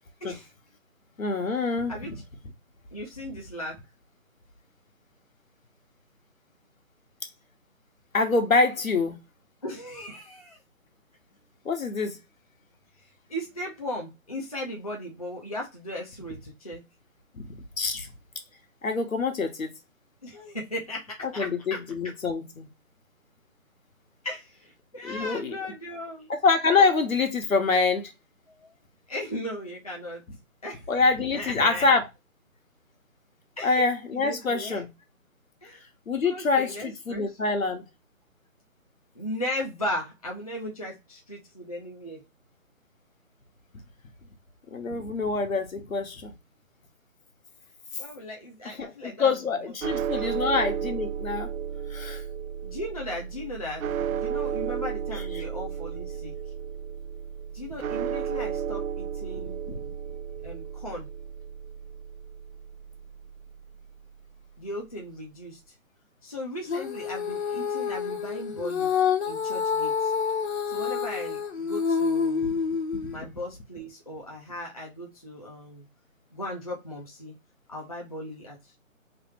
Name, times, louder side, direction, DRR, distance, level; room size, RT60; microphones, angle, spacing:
voice 1, 1.2-1.9 8.1-9.2 11.6-12.2 17.3-18.1 18.8-19.7 21.2-22.7 25.0-25.6 26.3-28.1 30.9-32.0 33.6-34.9 36.1-37.8 44.7-46.3 48.6-51.5 51.9-52.2 55.1-55.4 59.7-59.8, left 4 dB, 75° left, 1.1 m, -26 dB
voice 2, 2.9-3.8 9.6-10.6 13.3-16.8 20.2-21.8 24.2-26.3 28.5-28.7 29.1-30.2 30.6-30.9 31.3-31.9 33.6-33.8 34.1-34.8 35.6-35.9 36.2-37.3 39.1-42.2 48.0-49.7 50.1-50.4 52.6-53.9 54.1-56.3 57.5-59.6 60.4-61.1 64.6-65.6 66.2-68.9 69.2-70.1 70.7-72.5 73.1-75.9 76.3-77.3 77.7-78.8, left 1 dB, 30° left, 0.5 m, -37 dB
sound 1, 49.8-64.0, right 8 dB, 80° right, 0.5 m, -33 dB
Female singing, 66.7-73.2, left 6 dB, 55° left, 0.9 m, -28 dB
3.2 x 2.6 x 3.0 m
figure-of-eight pair, 160°, 41 cm